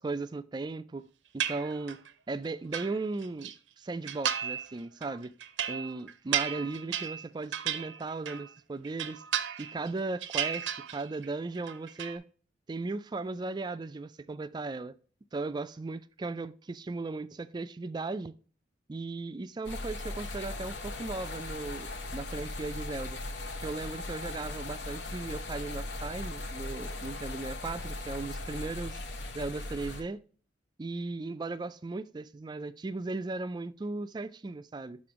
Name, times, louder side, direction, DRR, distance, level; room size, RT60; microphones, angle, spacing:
voice 1, 0.0-1.1 1.3-2.0 2.3-5.3 5.7-9.2 9.6-12.2 12.7-14.9 15.3-18.3 18.9-23.2 23.6-29.0 29.3-30.2 30.8-35.0, right 3 dB, 25° right, 0.3 m, -37 dB
sound 1, 1.4-2.1 2.5-3.5 4.1-4.7 5.0-8.5 8.8-9.9 10.2-11.3 11.6-12.2, right 9 dB, 80° right, 0.5 m, -34 dB
sound 2, 19.6-30.0, left 2 dB, 70° left, 0.9 m, -38 dB
6.1 x 3.7 x 4.9 m
head